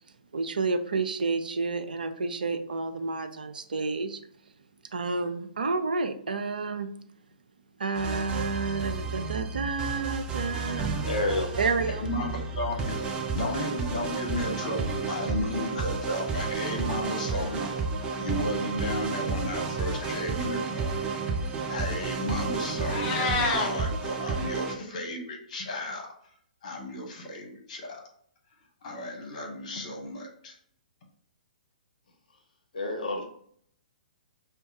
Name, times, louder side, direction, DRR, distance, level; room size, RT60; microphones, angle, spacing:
voice 1, 0.3-4.2 4.9-6.9 7.8-11.1 11.6-12.0, right 4 dB, 75° right, 0.5 m, -30 dB
sound 1, 8.0-24.7, right 4 dB, 20° right, 0.5 m, -31 dB
voice 2, 11.0-11.5 32.7-33.2, left 2 dB, 65° left, 0.7 m, -29 dB
voice 3, 11.9-13.0 13.3-17.7 18.1-21.0 21.7-26.1 26.6-28.0 28.8-30.5, left 1 dB, 50° left, 1.1 m, -34 dB
Meow, 22.7-23.7, left 3 dB, 30° left, 0.6 m, -28 dB
5.2 x 2.2 x 2.8 m
figure-of-eight pair, 120°, 5 cm